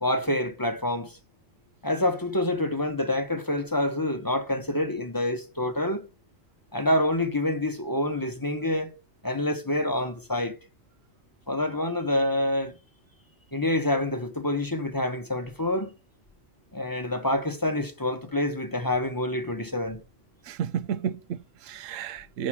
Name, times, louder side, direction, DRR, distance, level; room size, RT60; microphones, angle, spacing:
voice 1, 0.0-1.1 1.8-6.0 6.7-8.9 9.2-10.5 11.5-12.7 13.5-15.9 16.7-20.0, left 1 dB, 20° left, 0.9 m, -27 dB
voice 2, 20.4-22.5, right 8 dB, 75° right, 1.0 m, -32 dB
8.1 x 6.3 x 7.3 m
omnidirectional pair, 1.4 m